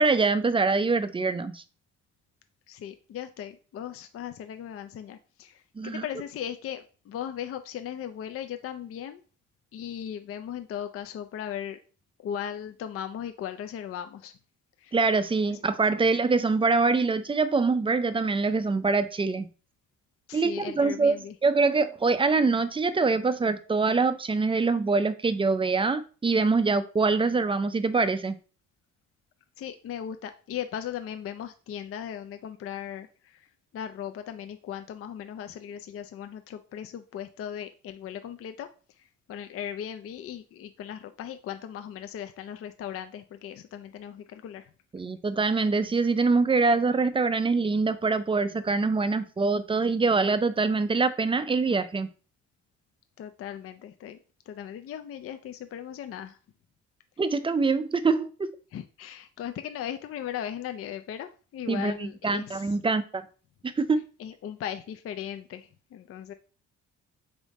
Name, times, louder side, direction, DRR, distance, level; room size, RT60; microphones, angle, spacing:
voice 1, 0.0-1.6 5.8-6.0 14.9-19.5 20.3-21.2 21.4-28.4 44.9-52.1 57.2-58.5 61.7-63.2 63.6-64.0, right 4 dB, 20° right, 0.4 m, -24 dB
voice 2, 2.7-9.2 9.7-11.8 12.2-14.4 14.8-15.0 15.5-15.6 20.3-21.3 29.6-33.5 33.7-38.7 39.3-44.7 53.2-54.2 54.5-56.4 58.7-62.7 64.2-66.3, left 9 dB, 50° left, 0.4 m, -37 dB
3.6 x 3.5 x 4.0 m
cardioid pair, 90°, 30 cm